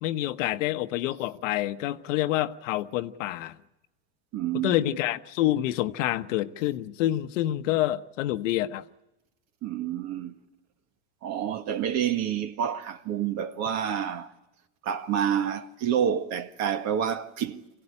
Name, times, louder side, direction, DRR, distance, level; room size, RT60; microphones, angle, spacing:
voice 1, 0.0-3.6 4.6-8.8, left 14 dB, 80° left, 1.0 m, -27 dB
voice 2, 4.3-5.0 9.6-10.4 11.2-14.3 14.8-17.6, right 9 dB, 45° right, 1.6 m, -28 dB
24.5 x 16.5 x 9.8 m
supercardioid pair, 125°, 37 cm